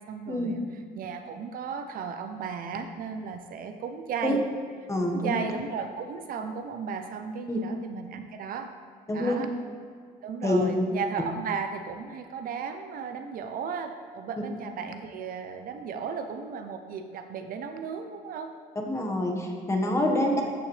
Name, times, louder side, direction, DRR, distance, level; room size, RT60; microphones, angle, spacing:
voice 1, 0.0-4.4 5.1-8.7 9.1-9.5 10.2-18.5 20.1-20.5, right 6 dB, 60° right, 7 dB, 0.6 m, -35 dB
voice 2, 4.9-5.3 7.5-7.6 9.1-9.4 10.4-10.7 18.9-20.4, left 1 dB, 15° left, 1 dB, 1.4 m, -26 dB
13.5 x 5.8 x 3.3 m, 2.1 s
cardioid pair, 110°, 17 cm